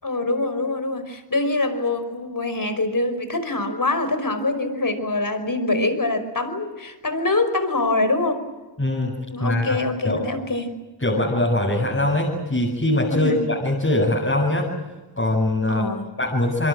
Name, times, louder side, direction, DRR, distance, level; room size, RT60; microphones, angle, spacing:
voice 1, 0.0-8.4 9.3-10.7 13.1-13.4 15.7-16.1, left 2 dB, 45° left, 10 dB, 5.2 m, -24 dB
voice 2, 8.8-9.8 10.0-10.2 11.0-14.7 15.2-15.9 16.2-16.7, left 1 dB, 30° left, -3 dB, 7.7 m, -22 dB
27.5 x 22.5 x 7.7 m, 1.2 s
cardioid pair, 45°, 46 cm